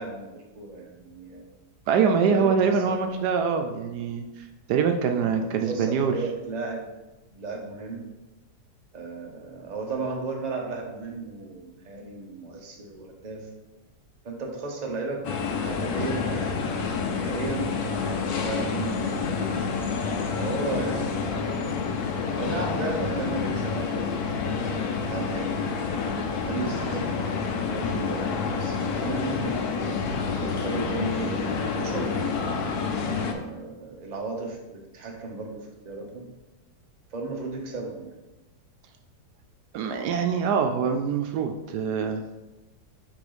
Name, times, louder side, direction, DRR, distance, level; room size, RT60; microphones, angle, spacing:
voice 1, 0.0-1.4 2.4-3.0 5.2-6.9 7.3-8.1 8.9-13.5 14.2-15.3 15.6-16.7 16.9-19.5 20.4-21.4 22.4-25.8 26.4-29.8 30.3-32.2 33.0-36.3 37.1-38.1, right 3 dB, 30° right, 0 dB, 0.9 m, -35 dB
voice 2, 1.9-6.1 39.7-42.4, right 6 dB, 75° right, 6 dB, 1.1 m, -24 dB
sound 1, 15.2-33.3, left 5 dB, 70° left, 1.2 m, -28 dB
6.1 x 3.7 x 5.0 m, 1.0 s
omnidirectional pair, 1.8 m